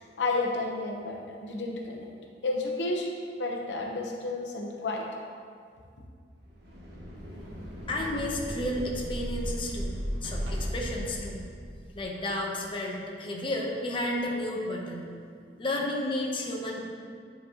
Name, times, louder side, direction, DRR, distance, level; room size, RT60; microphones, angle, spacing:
voice 1, 0.0-2.1 2.4-3.1 3.4-5.0, left 2 dB, 85° left, 0 dB, 0.8 m, -31 dB
sound 1, 6.4-12.0, equal, 65° right, 1.0 m, -36 dB
voice 2, 7.9-10.0 10.2-11.4 11.9-15.1 15.6-16.8, left 1 dB, 30° left, -1 dB, 0.7 m, -32 dB
9.4 x 4.0 x 2.8 m, 2.2 s
head